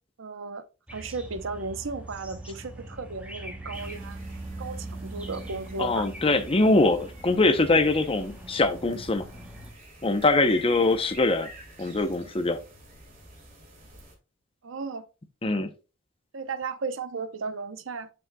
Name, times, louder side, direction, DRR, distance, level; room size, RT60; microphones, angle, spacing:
voice 1, 0.2-0.6 0.9-4.2 4.6-6.1 14.6-15.1 16.3-18.1, right 4 dB, 80° right, 0.7 m, -35 dB
sound 1, 0.9-9.7, right 1 dB, 5° right, 1.5 m, -41 dB
sound 2, 3.7-14.1, equal, 45° right, 2.8 m, -48 dB
voice 2, 5.8-9.2 10.0-11.5 11.8-12.6 15.4-15.7, left 2 dB, 30° left, 0.7 m, -23 dB
7.4 x 6.3 x 2.3 m
head